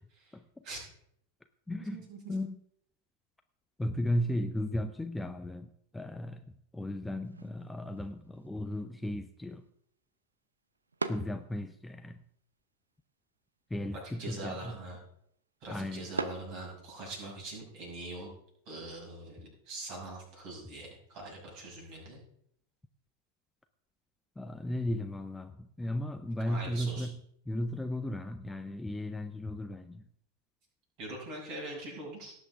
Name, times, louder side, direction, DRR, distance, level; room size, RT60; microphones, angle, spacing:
voice 1, 0.3-0.6 1.7-2.6 3.8-6.4 6.7-9.6 11.1-12.2 13.7-14.8 15.7-16.1 24.4-27.2 27.5-30.0, left 1 dB, 5° left, 9 dB, 0.5 m, -35 dB
voice 2, 1.8-2.3 13.9-15.0 15.6-18.3 18.7-22.2 26.5-27.1 31.0-32.3, right 2 dB, 40° right, -1 dB, 6.0 m, -43 dB
sound 1, 7.2-17.3, right 3 dB, 75° right, 0.7 m, -45 dB
18.5 x 8.2 x 3.5 m, 0.71 s
figure-of-eight pair, 90°, 0 cm